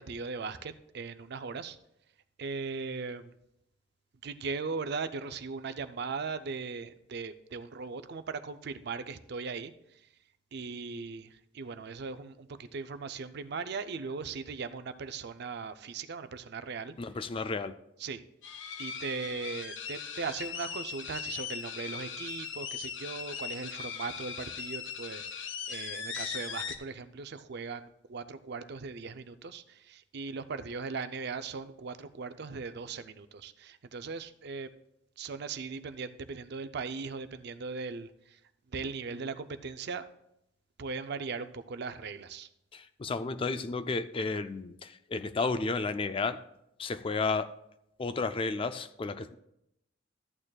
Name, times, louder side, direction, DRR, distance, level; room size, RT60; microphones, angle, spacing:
voice 1, 0.0-1.8 2.4-3.3 4.2-9.7 10.5-16.9 18.0-18.2 18.8-25.2 25.7-34.7 35.2-38.4 38.7-40.1 40.8-42.5, right 4 dB, 55° right, 11 dB, 0.5 m, -38 dB
voice 2, 17.0-17.7 42.7-46.4 46.8-47.5 48.0-49.3, left 3 dB, 25° left, 11 dB, 0.4 m, -32 dB
sound 1, 18.4-26.8, left 7 dB, 70° left, 0.8 m, -39 dB
13.5 x 8.7 x 2.3 m, 0.80 s
head